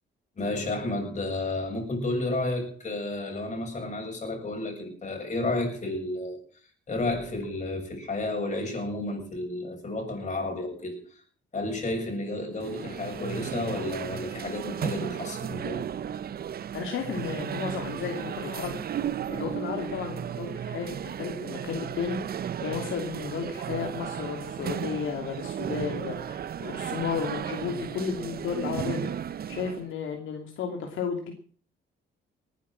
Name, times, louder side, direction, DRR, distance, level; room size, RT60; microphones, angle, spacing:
voice 1, 0.4-6.4 6.9-11.2 11.5-15.9, left 2 dB, 35° left, 2 dB, 7.6 m, -31 dB
sound 1, 12.5-29.9, right 9 dB, 50° right, 0.7 m, -34 dB
voice 2, 16.7-18.8 19.3-29.1 29.5-31.3, left 6 dB, 80° left, 3 dB, 3.0 m, -33 dB
19.5 x 10.5 x 6.0 m, 0.43 s
cardioid pair, 90°, 20 cm